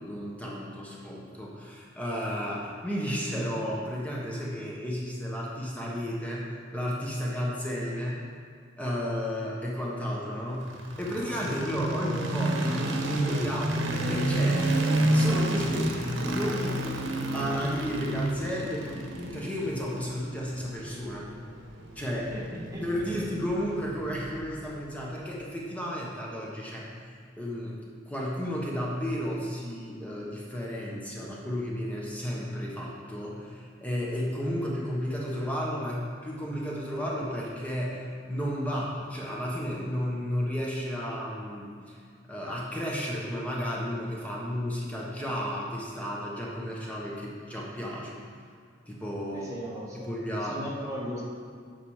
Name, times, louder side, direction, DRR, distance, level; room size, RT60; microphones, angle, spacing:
voice 1, 0.0-8.2 8.8-14.8 15.1-21.2 21.9-22.3 22.8-27.1 27.4-27.8 28.1-42.0 42.3-48.2 48.9-49.5 50.0-50.6, equal, 10° left, -4 dB, 1.1 m, -33 dB
sound 1, 10.6-24.7, right 1 dB, 85° right, 0.9 m, -30 dB
voice 2, 11.8-12.2 22.3-23.2 49.3-51.2, equal, 15° right, -5 dB, 1.7 m, -38 dB
8.8 x 5.8 x 4.9 m, 2.1 s
head